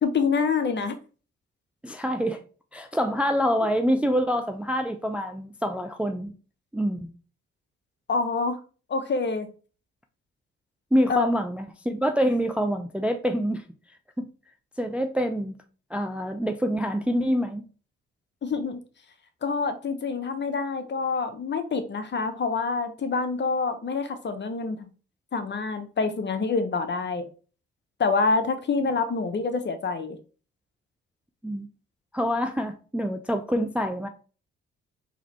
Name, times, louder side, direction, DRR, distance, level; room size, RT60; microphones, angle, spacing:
voice 1, 0.0-1.0 8.1-8.6 8.9-9.5 11.1-11.3 18.4-18.8 19.4-24.9 25.3-27.3 28.0-30.2, left 4 dB, 35° left, 0.8 m, -26 dB
voice 2, 1.8-2.4 2.7-6.3 6.7-7.1 10.9-13.6 14.2-14.3 14.8-15.5 15.9-17.6 31.4-31.7 32.1-34.1, equal, 5° right, 0.4 m, -26 dB
3.9 x 2.9 x 3.0 m
hypercardioid pair, 45°, 31 cm